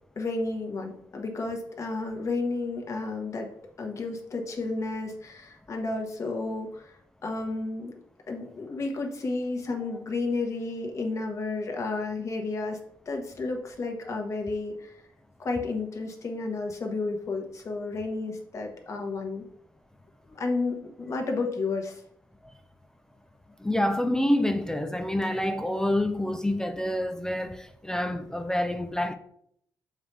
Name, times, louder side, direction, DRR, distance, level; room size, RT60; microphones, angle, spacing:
voice 1, 0.2-3.5 3.8-8.0 8.3-12.8 13.1-14.9 15.4-19.4 20.2-22.0, left 3 dB, 35° left, 1.2 m, -32 dB
voice 2, 23.6-29.2, left 1 dB, 5° left, 0.4 m, -27 dB
7.1 x 4.8 x 3.3 m
cardioid pair, 135°, 8 cm